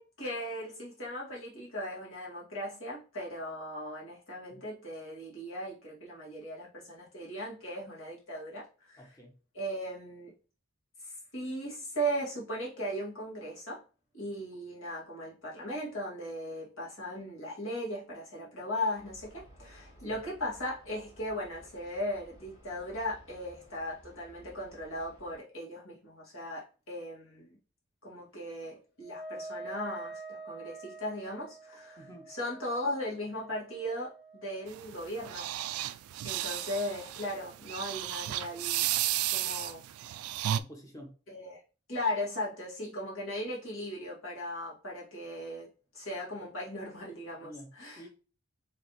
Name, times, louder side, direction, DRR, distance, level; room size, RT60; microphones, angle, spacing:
voice 1, 0.0-9.0 9.5-10.3 11.0-13.8 14.1-27.6 28.0-32.0 32.3-35.5 36.2-38.9 39.3-39.8 41.3-41.6 41.9-45.7 45.9-48.0, equal, 70° left, -5 dB, 2.3 m, -38 dB
voice 2, 9.0-9.3 20.1-20.2 32.0-32.3 40.6-41.2 42.8-42.9 47.4-48.1, equal, 15° left, 2 dB, 1.0 m, -49 dB
sound 1, 19.0-25.4, equal, 30° left, 2.0 m, -57 dB
Wind instrument woodwind instrument, 29.0-34.7, right 3 dB, 50° left, 0.7 m, -46 dB
sound 2, 34.7-40.6, right 13 dB, 90° right, 0.3 m, -33 dB
4.9 x 3.2 x 3.1 m, 0.36 s
head